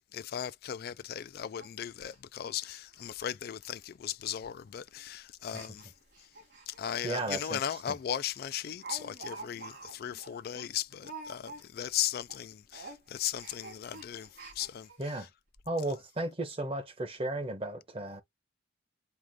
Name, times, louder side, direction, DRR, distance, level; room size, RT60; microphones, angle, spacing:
voice 1, 0.0-5.9 6.2-6.3 6.7-15.3, left 10 dB, 55° left, 0.3 m, -37 dB
Speech, 0.7-0.8 1.1-1.2 1.6-1.7 2.0-2.2 2.6-2.8 3.0-3.3 3.6-3.7 4.4-4.7 5.4-7.5 7.9-8.0 8.3-11.9 12.2-12.4 12.7-15.0 15.6-15.7 15.9-16.0, right 3 dB, 60° right, 2.6 m, -48 dB
voice 2, 7.0-7.6 7.9-8.0 15.0-15.3 15.7-18.2, right 1 dB, 30° right, 0.9 m, -34 dB
4.6 x 2.5 x 3.6 m
head